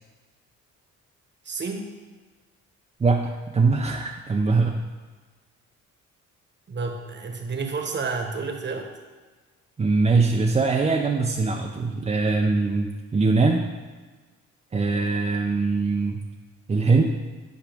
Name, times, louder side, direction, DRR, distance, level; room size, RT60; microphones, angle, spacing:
voice 1, 1.4-1.9 6.7-8.9, right 4 dB, 35° right, 3 dB, 1.2 m, -30 dB
voice 2, 3.0-4.8 9.8-13.7 14.7-16.2 16.7-17.0, right 3 dB, 20° right, 0 dB, 0.6 m, -22 dB
10.5 x 4.8 x 3.5 m, 1.3 s
cardioid pair, 90°, 30 cm